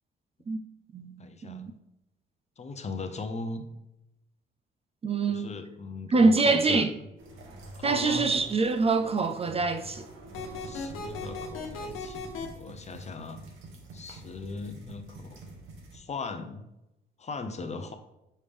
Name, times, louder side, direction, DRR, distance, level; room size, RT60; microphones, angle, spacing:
voice 1, 1.2-1.7 2.6-3.7 5.3-6.9 7.8-8.3 10.6-12.2 12.5-13.4 13.9-15.4 15.9-16.6 17.2-17.9, left 3 dB, 35° left, 0.7 m, -38 dB
voice 2, 5.0-5.6 6.1-6.9 7.8-10.0, right 3 dB, 30° right, 0.4 m, -24 dB
sound 1, 7.2-16.0, right 2 dB, 80° right, 1.3 m, -47 dB
sound 2, 10.3-12.5, left 4 dB, 90° left, 1.2 m, -36 dB
5.5 x 5.0 x 3.5 m
cardioid pair, 100°, 20 cm